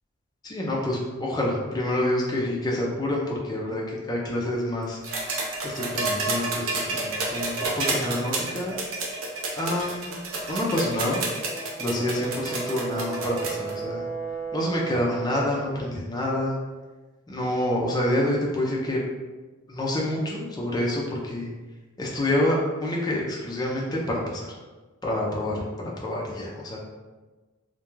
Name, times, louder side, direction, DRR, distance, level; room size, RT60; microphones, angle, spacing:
voice 1, 0.4-5.0 5.6-8.8 9.5-10.2 10.5-11.2 11.8-14.1 14.5-16.6 17.3-19.0 19.7-21.5 22.0-24.6 25.0-26.8, left 1 dB, 20° left, -3 dB, 0.4 m, -27 dB
sound 1, 5.0-13.7 14.9-15.0, right 3 dB, 85° right, 0.5 m, -30 dB
Brass instrument, 11.4-15.6, right 5 dB, 80° left, 0.4 m, -34 dB
2.3 x 2.1 x 3.0 m, 1.3 s
head